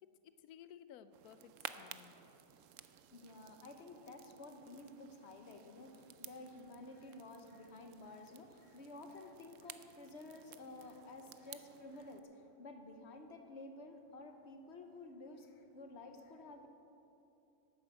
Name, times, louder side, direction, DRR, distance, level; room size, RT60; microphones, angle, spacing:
voice 1, 0.0-2.2, left 9 dB, 85° left, 12 dB, 1.1 m, -57 dB
sound 1, 1.1-12.2, right 10 dB, 70° right, 0.9 m, -55 dB
voice 2, 2.5-16.7, left 2 dB, 50° left, 5 dB, 1.3 m, -52 dB
11.5 x 9.1 x 7.6 m, 2.9 s
omnidirectional pair, 1.5 m